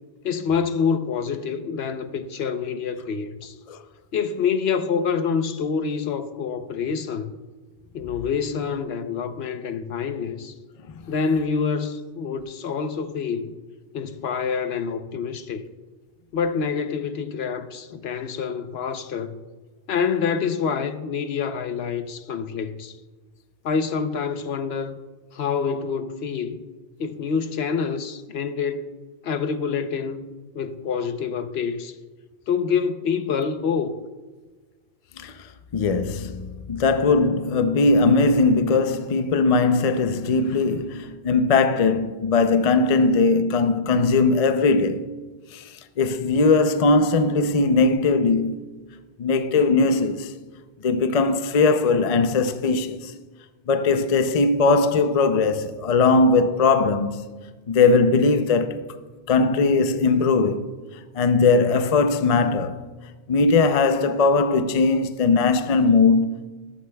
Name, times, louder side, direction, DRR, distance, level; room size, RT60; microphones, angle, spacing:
voice 1, 0.2-3.6 4.1-7.3 7.9-10.5 11.1-13.6 13.9-15.6 16.3-19.4 19.9-23.0 23.6-25.0 25.3-26.6 27.0-28.9 29.2-30.3 30.5-31.9 32.5-34.0, left 6 dB, 70° left, 0.9 m, -26 dB
voice 2, 35.2-35.5 35.7-45.1 45.5-48.6 49.2-50.3 50.8-53.1 53.7-57.3 57.7-58.8 59.3-60.7 61.1-62.8 63.3-66.5, left 3 dB, 45° left, 0.5 m, -20 dB
14.5 x 13.0 x 2.3 m
omnidirectional pair, 1.1 m